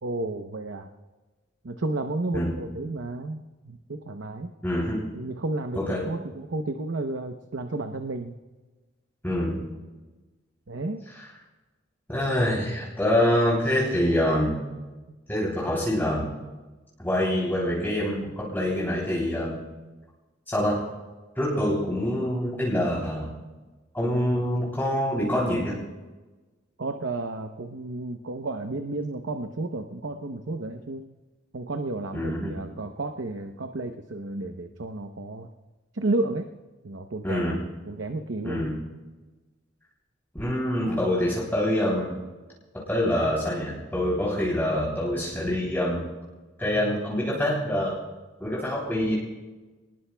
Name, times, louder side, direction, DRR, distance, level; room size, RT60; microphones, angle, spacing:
voice 1, 0.0-0.9 1.6-4.5 5.1-8.3 10.7-11.0 15.1-15.2 26.8-31.1 31.5-35.5 35.9-36.5 36.8-37.6 37.8-38.6, right 2 dB, 80° right, 6 dB, 0.8 m, -32 dB
voice 2, 2.3-2.7 4.6-5.1 5.7-6.1 9.2-9.7 11.1-11.3 12.1-14.6 15.3-16.3 17.0-19.6 20.5-20.9 21.3-23.3 23.9-25.8 32.1-32.6 37.2-37.7 38.4-38.8 40.3-42.2 42.7-46.0 46.6-48.0 48.4-49.2, left 1 dB, 10° left, -6 dB, 3.2 m, -26 dB
26.5 x 20.0 x 2.3 m, 1.2 s
head